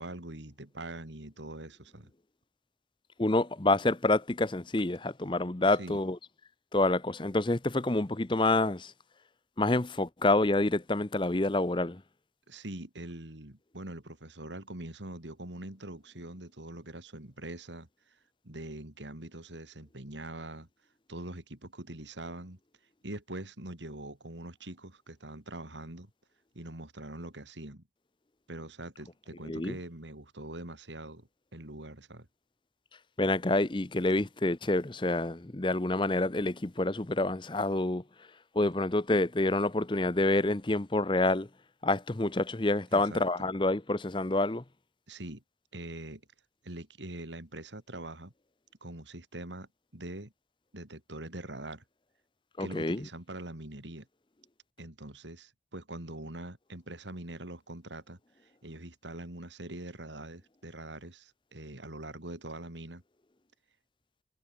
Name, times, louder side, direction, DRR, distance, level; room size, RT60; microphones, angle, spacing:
voice 1, 0.0-2.1 5.8-6.0 12.5-18.2 18.4-20.7 21.1-22.6 23.0-26.1 26.5-27.8 28.5-32.3 42.9-43.2 45.1-45.4 45.7-46.2 46.6-48.3 48.8-50.3 50.7-51.8 52.6-54.1 54.8-63.0, right 1 dB, 85° right, 3.4 m, -43 dB
voice 2, 3.2-6.2 6.7-8.9 9.6-12.0 29.5-29.8 33.2-38.0 38.5-41.5 41.8-44.6 52.6-53.0, left 2 dB, 25° left, 0.8 m, -27 dB
head